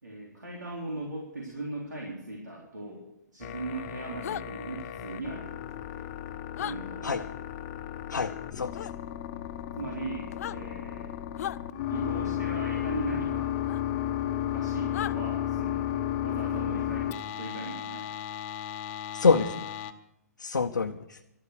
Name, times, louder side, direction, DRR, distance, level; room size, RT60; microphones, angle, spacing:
voice 1, 0.0-3.1 3.3-5.6 5.9-6.1 6.6-7.4 9.7-11.1 11.9-13.6 14.4-18.1, right 2 dB, 90° right, -3 dB, 3.7 m, -38 dB
sound 1, 3.4-19.9, left 11 dB, 40° left, 1.1 m, -34 dB
sound 2, 4.2-4.4 6.6-6.8 8.7-8.9 10.3-10.6 11.4-11.6 13.7-13.8 14.9-15.2, left 11 dB, 55° left, 0.5 m, -35 dB
voice 2, 8.1-8.9 19.1-19.5 20.4-21.2, left 5 dB, 85° left, 4 dB, 0.8 m, -26 dB
13.0 x 12.5 x 6.6 m, 0.83 s
hypercardioid pair, 130°, 10 cm